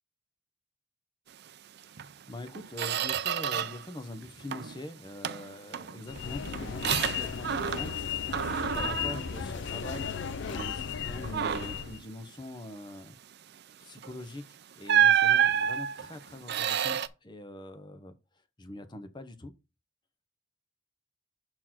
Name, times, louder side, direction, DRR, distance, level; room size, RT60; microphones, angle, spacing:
voice 1, 1.8-7.9 8.7-10.1 10.5-13.1 13.8-18.1 18.6-19.5, left 2 dB, 20° left, 0.9 m, -43 dB
Squeak, 2.0-2.1 2.5-3.9 4.2-4.8 5.2-8.0 8.3-10.2 10.6-10.8 11.2-11.9 14.0-14.2 14.9-17.1, right 9 dB, 55° right, 0.5 m, -29 dB
sound 1, 6.1-12.0, left 7 dB, 60° left, 0.5 m, -35 dB
6.1 x 4.5 x 5.8 m
head